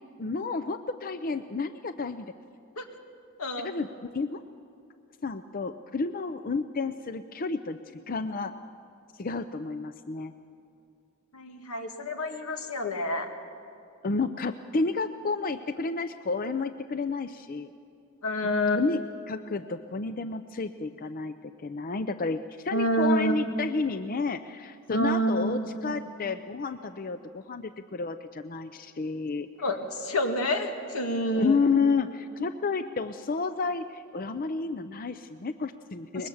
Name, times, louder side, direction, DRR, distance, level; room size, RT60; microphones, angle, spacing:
voice 1, 0.2-2.3 3.6-4.4 5.2-7.8 8.1-8.5 9.2-10.3 14.0-17.7 18.7-29.5 31.4-36.3, left 4 dB, 40° left, 10 dB, 0.5 m, -31 dB
voice 2, 3.4-3.7 11.3-13.3 18.2-18.8 22.7-23.4 24.9-26.1 29.6-31.5, equal, 85° left, 4 dB, 2.1 m, -28 dB
23.0 x 21.0 x 7.1 m, 2.5 s
head